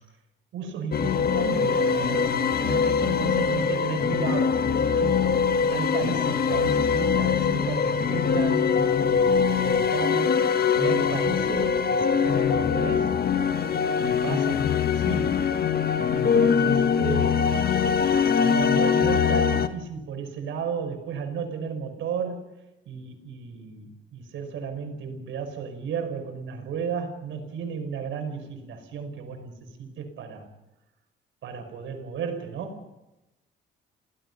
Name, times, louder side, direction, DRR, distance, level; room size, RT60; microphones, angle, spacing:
voice 1, 0.5-5.3 5.7-10.4 10.8-13.1 14.0-15.4 16.1-17.8 18.2-22.4 22.9-30.5 31.4-32.9, right 6 dB, 80° right, 4 dB, 5.6 m, -34 dB
sound 1, 0.9-19.7, left 6 dB, 50° left, 1.5 m, -23 dB
28.5 x 18.5 x 5.6 m, 0.96 s
cardioid pair, 90°, 20 cm